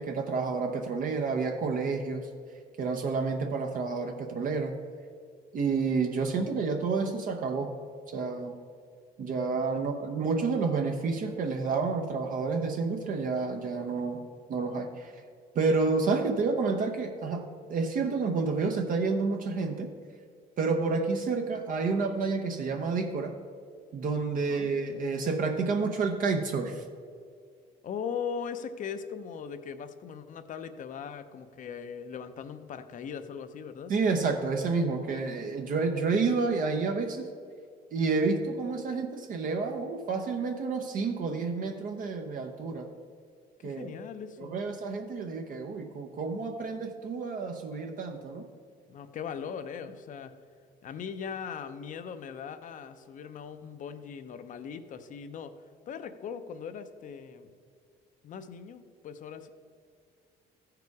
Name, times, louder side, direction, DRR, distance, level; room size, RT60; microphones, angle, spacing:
voice 1, 0.0-2.3 2.8-4.8 5.5-7.7 8.1-8.6 9.2-14.2 14.5-15.2 15.5-19.9 20.6-23.4 23.9-26.8 33.9-37.3 37.9-42.9 43.6-43.9 44.4-48.5, right 4 dB, 55° right, 3 dB, 0.8 m, -29 dB
voice 2, 24.4-24.7 27.8-33.9 43.6-44.6 48.9-50.3 50.8-55.5 55.9-57.5 58.2-59.5, left 7 dB, 50° left, 10 dB, 0.7 m, -39 dB
14.5 x 4.9 x 4.7 m, 2.2 s
cardioid pair, 110°, 17 cm